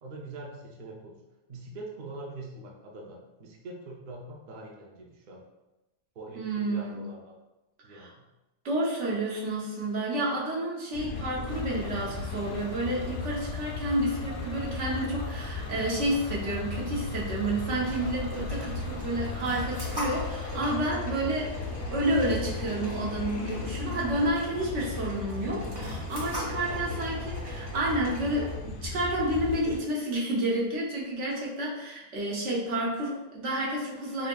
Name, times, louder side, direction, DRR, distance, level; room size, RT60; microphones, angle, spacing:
voice 1, 0.0-1.2 1.5-5.4 6.2-7.3 7.8-8.2 26.5-27.1, right 2 dB, 50° right, -1 dB, 0.7 m, -43 dB
voice 2, 6.4-7.0 7.9-8.1 8.6-34.3, right 1 dB, 85° right, -4 dB, 1.2 m, -30 dB
sound 1, 10.9-29.8, left 3 dB, 75° left, 1.0 m, -36 dB
Bus / Engine, 11.5-20.7, left 2 dB, 45° left, 0.7 m, -47 dB
sound 2, 17.8-28.6, equal, 20° right, 1.0 m, -41 dB
5.0 x 2.7 x 2.2 m, 0.99 s
omnidirectional pair, 1.2 m